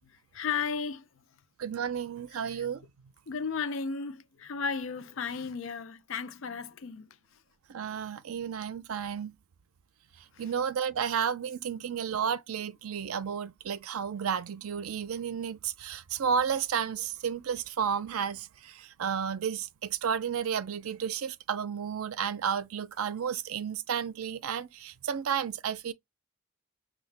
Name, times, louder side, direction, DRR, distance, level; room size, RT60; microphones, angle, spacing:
voice 1, 0.1-1.1 2.4-2.7 3.3-7.2 10.3-10.5, left 5 dB, 65° left, 0.5 m, -35 dB
voice 2, 1.6-2.9 7.7-9.3 10.4-25.9, right 7 dB, 85° right, 0.5 m, -32 dB
5.6 x 2.3 x 3.3 m
head